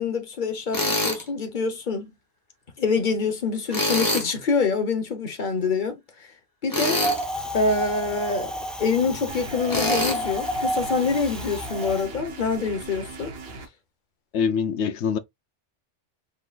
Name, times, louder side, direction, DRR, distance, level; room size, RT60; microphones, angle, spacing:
voice 1, 0.0-2.1 2.8-6.0 6.6-7.0 7.5-8.5 8.8-13.3, left 4 dB, 45° left, 1.1 m, -25 dB
Tools, 0.7-1.2 3.7-4.3 6.7-7.2 9.7-10.2, left 1 dB, 20° left, 1.0 m, -24 dB
Wind, 7.0-12.1, right 1 dB, ahead, 0.6 m, -31 dB
sound 1, 9.3-13.7, right 3 dB, 60° right, 1.1 m, -39 dB
voice 2, 14.3-15.2, left 6 dB, 75° left, 0.9 m, -24 dB
4.6 x 3.8 x 2.3 m
omnidirectional pair, 1.2 m